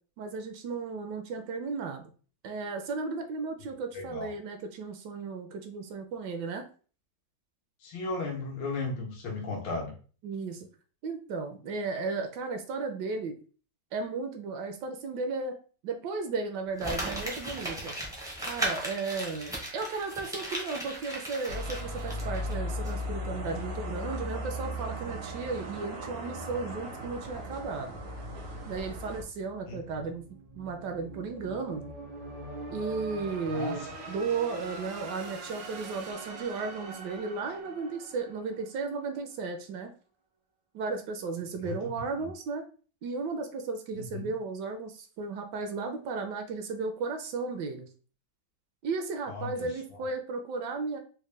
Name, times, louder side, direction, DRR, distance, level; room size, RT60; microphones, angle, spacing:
voice 1, 0.2-2.1 2.4-6.7 10.2-10.7 11.0-13.4 13.9-15.6 15.8-17.9 18.5-27.9 28.7-30.2 30.6-31.8 32.7-39.9 40.7-42.6 43.0-47.9 48.8-51.0, right 4 dB, 75° right, 5 dB, 1.1 m, -35 dB
voice 2, 3.9-4.3 7.8-9.9 29.7-30.1 33.5-33.8 41.6-41.8 42.2-42.3 43.9-44.3 49.3-50.0, left 3 dB, 80° left, 0 dB, 1.6 m, -36 dB
Crumpling crinkling, 16.8-22.5 22.8-22.9, right 1 dB, 5° right, 0.4 m, -36 dB
sound 1, 21.5-29.2, equal, 55° right, 0.7 m, -37 dB
sound 2, 29.0-39.2, right 2 dB, 90° right, 1.5 m, -44 dB
4.2 x 2.1 x 3.2 m, 0.39 s
omnidirectional pair, 2.0 m